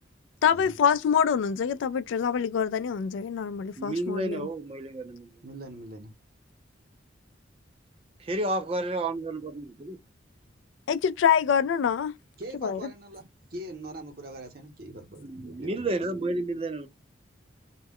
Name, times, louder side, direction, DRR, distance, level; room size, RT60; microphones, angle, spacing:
voice 1, 0.4-4.4 10.9-12.1 12.6-12.9, left 7 dB, 90° left, 0.3 m, -25 dB
voice 2, 3.8-5.4 8.3-10.0 15.2-16.9, right 2 dB, 30° right, 0.5 m, -31 dB
voice 3, 5.4-6.1 12.4-13.3 13.5-16.0, right 1 dB, 55° right, 0.9 m, -42 dB
2.2 x 2.1 x 3.5 m
head